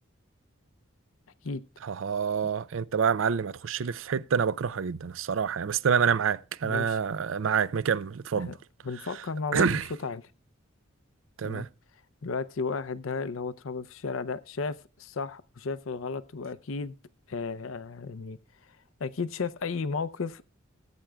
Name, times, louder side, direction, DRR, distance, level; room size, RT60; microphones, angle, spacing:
voice 1, 1.8-8.5 9.5-9.9 11.4-11.7, right 6 dB, 70° right, 0.5 m, -27 dB
voice 2, 6.6-7.0 8.4-8.5 8.8-10.2 11.4-11.7 12.2-16.9 17.3-18.4 19.0-20.4, left 4 dB, 80° left, 0.6 m, -34 dB
19.0 x 8.8 x 2.3 m
head